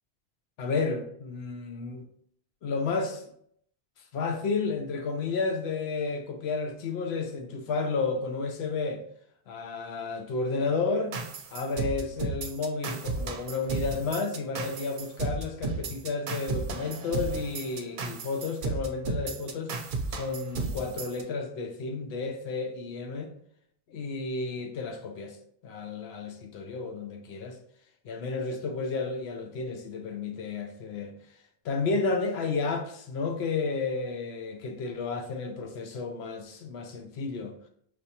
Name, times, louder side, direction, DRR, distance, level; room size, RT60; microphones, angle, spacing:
voice 1, 0.6-2.1 2.6-3.2 4.1-9.0 9.5-11.2 11.5-19.7 20.1-23.3 23.9-25.4 25.6-27.6 28.0-31.1 31.6-37.6, left 4 dB, 85° left, 0.9 m, -32 dB
sound 1, 11.1-21.2, right 4 dB, 60° right, 0.7 m, -34 dB
4.9 x 2.9 x 2.7 m
omnidirectional pair, 1.1 m